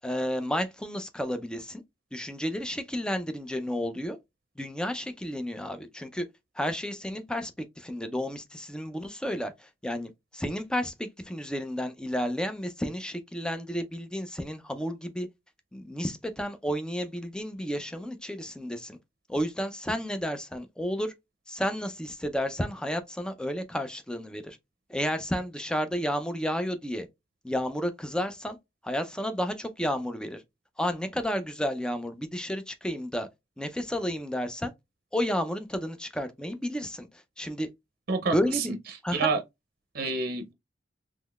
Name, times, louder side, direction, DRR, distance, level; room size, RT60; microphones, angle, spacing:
voice 1, 0.0-1.8 2.1-4.2 4.6-6.3 6.6-7.5 7.8-15.3 15.7-19.0 19.3-21.1 21.5-24.6 24.9-27.1 27.4-28.6 28.8-30.4 30.8-33.3 33.6-34.7 35.1-37.1 37.4-37.7 38.3-38.7 39.0-39.3, equal, 5° left, 0.4 m, -31 dB
voice 2, 38.1-38.7 39.1-39.4 39.9-40.5, right 4 dB, 50° right, 0.6 m, -28 dB
3.7 x 3.0 x 2.3 m
head